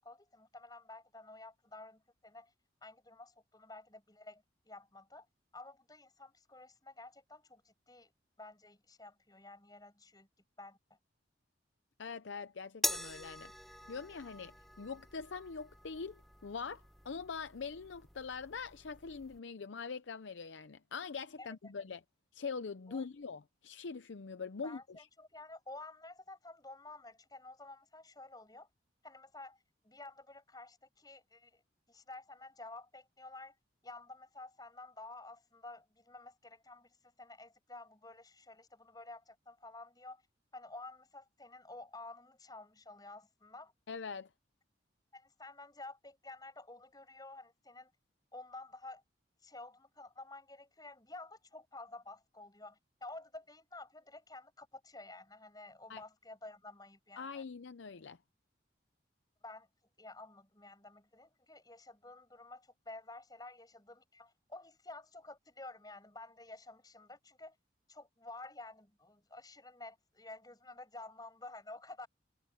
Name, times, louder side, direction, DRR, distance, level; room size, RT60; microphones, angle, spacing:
voice 1, 0.0-2.5 2.8-5.3 5.5-8.1 8.4-10.3 10.6-11.0 21.4-21.5 22.9-23.1 24.6-28.7 29.0-29.6 29.8-31.6 31.9-33.6 33.8-40.2 40.5-43.7 45.1-47.9 48.3-49.0 49.4-57.4 59.4-59.7 60.0-67.6 67.9-72.1, left 2 dB, 20° left, 8.0 m, -51 dB
voice 2, 12.0-13.5 13.9-22.0 22.3-25.1 43.9-44.3 55.9-56.0 57.2-58.2, left 5 dB, 85° left, 0.6 m, -43 dB
sound 1, 12.8-19.4, left 1 dB, ahead, 1.1 m, -43 dB
head